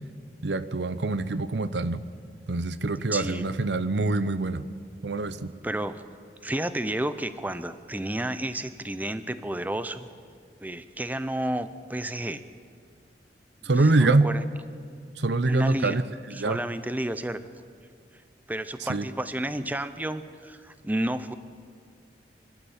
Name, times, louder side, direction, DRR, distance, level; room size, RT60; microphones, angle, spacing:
voice 1, 0.4-2.0 2.5-4.6 5.0-5.5 13.6-14.3 15.2-16.6 18.9-19.1, right 2 dB, 75° right, 14 dB, 0.8 m, -25 dB
voice 2, 3.1-3.5 5.6-6.0 6.4-10.1 10.6-12.4 13.6-14.4 15.5-16.0 16.3-17.4 18.5-21.3, right 1 dB, 10° right, 12 dB, 0.5 m, -31 dB
24.0 x 12.5 x 8.8 m, 2.1 s
head